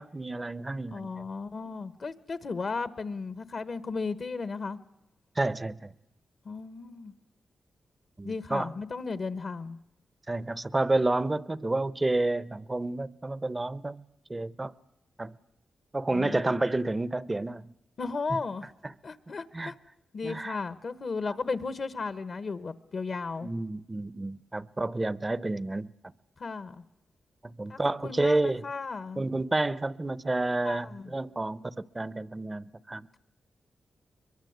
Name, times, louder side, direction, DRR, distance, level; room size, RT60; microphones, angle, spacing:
voice 1, 0.0-1.1 5.4-5.9 8.2-8.7 10.3-14.0 14.3-14.7 15.2-15.3 15.9-17.6 18.8-18.9 19.5-19.7 20.2-20.6 23.4-25.9 27.6-28.6 29.2-33.1, right 2 dB, 20° right, 0.8 m, -30 dB
voice 2, 0.9-4.8 6.4-7.1 8.2-9.8 16.1-16.5 18.0-18.7 19.0-19.7 20.1-23.5 26.4-26.8 27.7-29.2 30.6-31.1, left 4 dB, 55° left, 1.2 m, -35 dB
23.0 x 23.0 x 8.1 m
cardioid pair, 80°, 0 cm